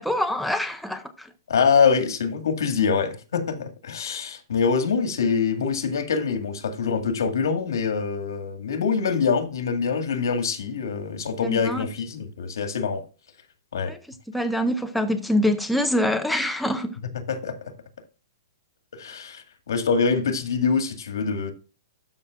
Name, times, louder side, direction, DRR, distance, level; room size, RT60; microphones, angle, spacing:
voice 1, 0.0-1.3 11.4-11.9 13.8-14.0 14.3-17.0, left 1 dB, ahead, 0.4 m, -25 dB
voice 2, 1.5-13.0 13.7-13.9 17.3-17.6 18.9-21.5, left 5 dB, 80° left, 2.0 m, -24 dB
12.5 x 6.0 x 2.5 m
hypercardioid pair, 180°, 2 cm